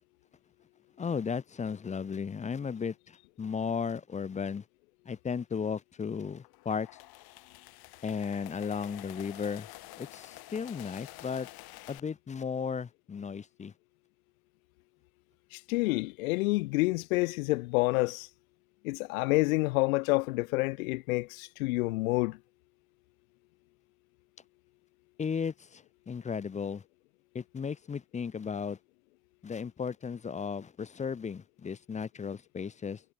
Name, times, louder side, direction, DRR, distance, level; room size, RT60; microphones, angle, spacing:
voice 1, 1.0-4.6 5.1-6.9 8.0-9.7 10.0-11.5 11.9-13.7 25.2-26.8 27.3-28.8 29.4-33.0, left 6 dB, 15° left, 0.6 m, -35 dB
sound 1, 6.4-12.0, left 18 dB, 60° left, 2.8 m, -49 dB
voice 2, 15.5-18.3 18.8-22.4, left 23 dB, 75° left, 0.6 m, -28 dB
hypercardioid pair, 70°, 43 cm